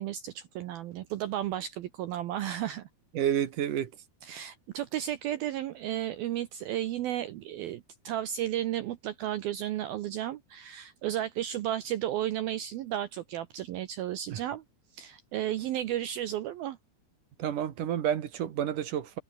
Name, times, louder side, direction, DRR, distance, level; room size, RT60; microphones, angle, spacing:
voice 1, 0.0-2.9 4.2-14.6 14.9-16.8, right 12 dB, 75° right, 2.2 m, -33 dB
voice 2, 3.1-3.9 14.3-14.4 17.4-19.2, right 10 dB, 60° right, 2.5 m, -30 dB
omnidirectional pair, 5.5 m